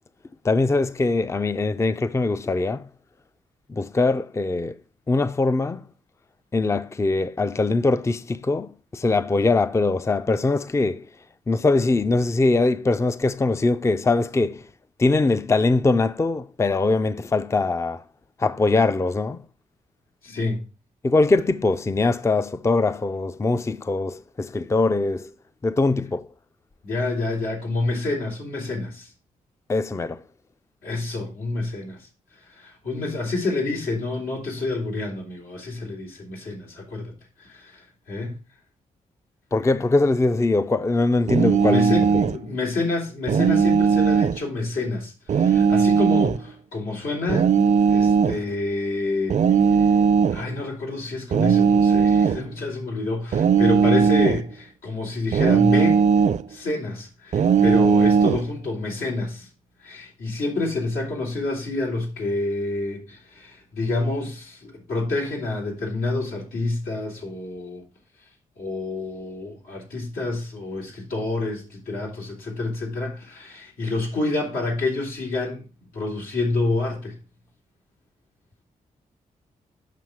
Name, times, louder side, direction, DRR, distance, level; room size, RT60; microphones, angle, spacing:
voice 1, 0.4-2.9 3.7-4.8 5.1-5.8 6.5-11.1 11.5-14.6 15.0-18.0 18.4-19.4 21.0-25.3 25.6-26.3 29.7-30.2 39.5-41.8, left 3 dB, 20° left, 0.4 m, -22 dB
voice 2, 20.2-20.6 26.8-29.1 30.8-38.4 41.4-47.5 47.9-49.4 49.7-50.0 50.3-56.1 56.5-59.5 59.8-67.8 68.6-75.6 75.9-77.2, left 2 dB, 90° left, 3.5 m, -28 dB
sound 1, 41.3-42.4 43.3-44.4 45.3-46.4 47.3-48.4 49.3-50.4 51.3-52.4 53.3-54.4 55.3-56.4 57.3-58.4, right 6 dB, 55° right, 0.5 m, -18 dB
7.6 x 5.7 x 4.7 m
cardioid pair, 70°, 15 cm